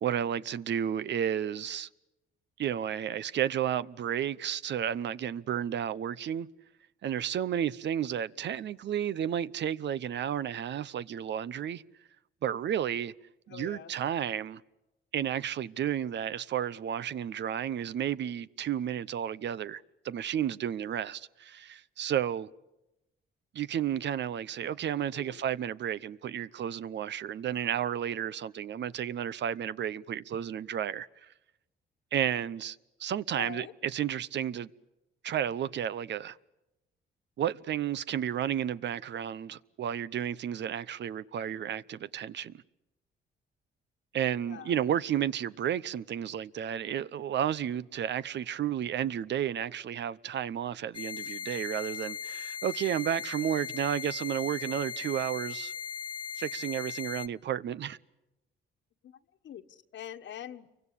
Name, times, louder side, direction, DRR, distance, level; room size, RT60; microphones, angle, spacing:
voice 1, 0.0-1.9 2.6-6.5 7.0-11.8 12.4-13.1 13.5-14.6 15.1-22.5 23.5-31.3 32.1-34.7 35.2-36.4 37.4-42.5 44.1-55.7 56.4-58.0, right 9 dB, 60° right, 0.9 m, -32 dB
voice 2, 13.5-13.9 25.1-25.4 33.4-33.7 44.5-44.8 59.0-59.2 59.4-60.7, left 10 dB, 65° left, 1.6 m, -44 dB
sound 1, 50.9-57.3, left 7 dB, 25° left, 0.9 m, -38 dB
29.0 x 24.0 x 8.5 m
cardioid pair, 90°, 20 cm